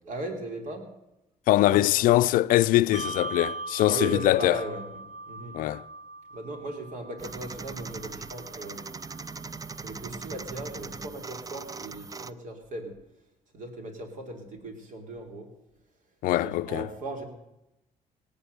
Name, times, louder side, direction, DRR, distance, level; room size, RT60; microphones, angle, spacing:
voice 1, 0.0-0.9 1.7-1.9 3.9-4.9 5.2-5.6 6.3-8.8 9.8-13.0 13.5-15.5 16.4-17.2, right 2 dB, 65° right, 3.3 m, -37 dB
voice 2, 1.5-4.6 5.5-5.8 16.2-16.9, left 15 dB, 85° left, 0.5 m, -22 dB
Bell, 2.9-9.8, right 2 dB, 85° right, 1.3 m, -40 dB
sound 1, 7.2-12.3, right 4 dB, 25° right, 0.5 m, -40 dB
18.5 x 8.9 x 6.8 m
cardioid pair, 100°, 14 cm